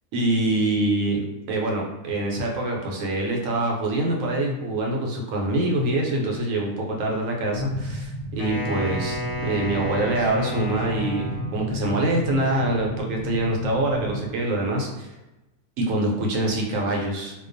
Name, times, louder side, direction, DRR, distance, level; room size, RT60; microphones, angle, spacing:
voice 1, 0.1-15.1 15.8-17.3, right 1 dB, 75° right, 0 dB, 0.9 m, -25 dB
sound 1, 7.5-14.3, right 1 dB, 60° left, 0.7 m, -32 dB
Wind instrument woodwind instrument, 8.4-11.8, equal, 85° left, 1.0 m, -33 dB
2.3 x 2.2 x 2.5 m, 1.0 s
omnidirectional pair, 1.4 m